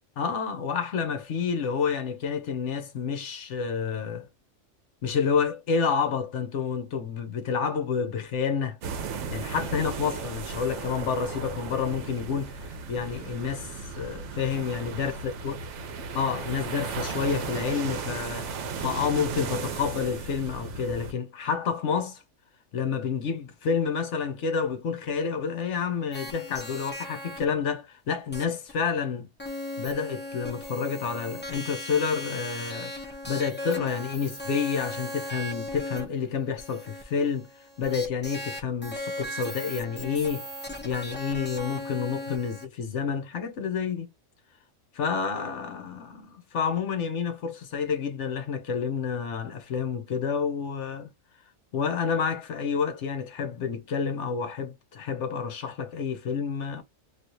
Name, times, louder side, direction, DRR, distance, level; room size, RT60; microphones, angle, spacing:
voice 1, 0.2-4.3 5.0-8.8 9.3-15.6 16.1-22.2 22.7-29.3 29.8-37.5 37.8-40.5 40.8-44.1 44.9-51.1 51.7-56.8, left 6 dB, 65° left, 1.0 m, -29 dB
sound 1, 8.8-21.1, right 5 dB, 70° right, 0.9 m, -35 dB
sound 2, 26.1-27.4 28.3-28.4 28.7-28.8 29.4-42.6, left 1 dB, 10° left, 0.5 m, -38 dB
3.2 x 2.5 x 2.7 m
omnidirectional pair, 1.4 m